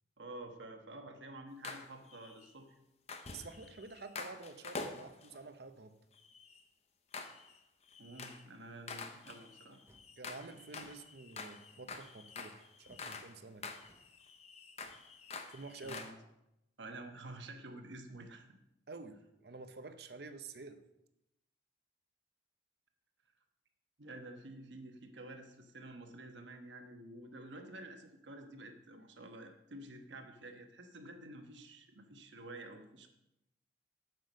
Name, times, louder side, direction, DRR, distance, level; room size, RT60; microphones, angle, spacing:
voice 1, 0.2-2.7 8.0-9.8 15.8-16.2 16.8-18.5 24.0-33.1, right 2 dB, 80° right, 5 dB, 1.2 m, -50 dB
sound 1, 1.6-2.5 3.1-5.4 6.1-6.6 7.1-7.6 7.9-8.5 8.9-13.4 13.6-16.1, left 4 dB, 35° left, 0.7 m, -47 dB
voice 2, 3.3-6.0 10.2-13.7 15.5-16.0 18.9-20.8, right 3 dB, 55° right, 9 dB, 0.7 m, -49 dB
sound 2, 9.8-10.2 10.7-11.1 11.8-12.2 12.8-13.2 13.8-14.2 14.8-15.1 15.7-16.1, right 1 dB, 15° right, 0.6 m, -66 dB
7.7 x 6.8 x 5.4 m, 0.87 s
head